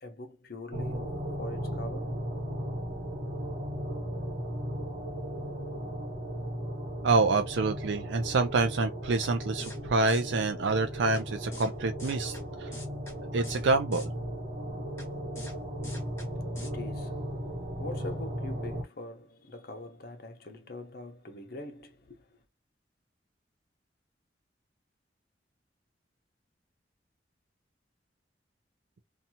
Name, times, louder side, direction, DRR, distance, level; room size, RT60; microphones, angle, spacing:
voice 1, 0.0-2.2 16.6-17.3 17.8-22.2, left 2 dB, 55° left, 0.7 m, -43 dB
sound 1, 0.7-18.8, equal, 55° right, 1.0 m, -36 dB
voice 2, 7.0-12.7 13.3-14.1, right 3 dB, 90° right, 0.4 m, -27 dB
sound 2, 9.2-9.3 9.6-9.8 10.1-10.2 11.1-11.2 11.5-11.7 12.0-12.4 12.7-13.1 13.4-13.6 13.9-14.1 15.0-15.1 15.4-15.5 15.8-16.3 16.6-16.7, left 1 dB, 15° left, 1.1 m, -45 dB
2.7 x 2.3 x 2.7 m
head